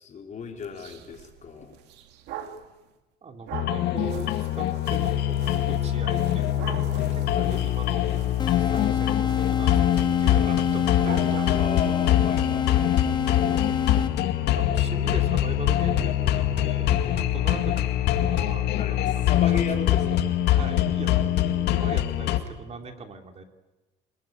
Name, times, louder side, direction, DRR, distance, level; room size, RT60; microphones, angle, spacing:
voice 1, 0.0-1.8 7.3-7.5 8.7-8.9 10.4-10.5 11.6-13.2 14.5-15.2 18.7-20.2, left 6 dB, 45° left, 2 dB, 4.5 m, -36 dB
sound 1, 0.6-2.7 3.5-12.0, right 8 dB, 85° right, 2.4 m, -43 dB
voice 2, 3.2-11.6 14.4-19.6 20.5-21.1 21.4-23.4, right 4 dB, 40° right, 5 dB, 3.4 m, -40 dB
sound 2, 3.5-22.4, left 12 dB, 80° left, 2.2 m, -24 dB
sound 3, 8.4-14.4, left 7 dB, 25° left, 1.2 m, -28 dB
26.5 x 21.0 x 9.4 m, 1.1 s
cardioid pair, 110°, 17 cm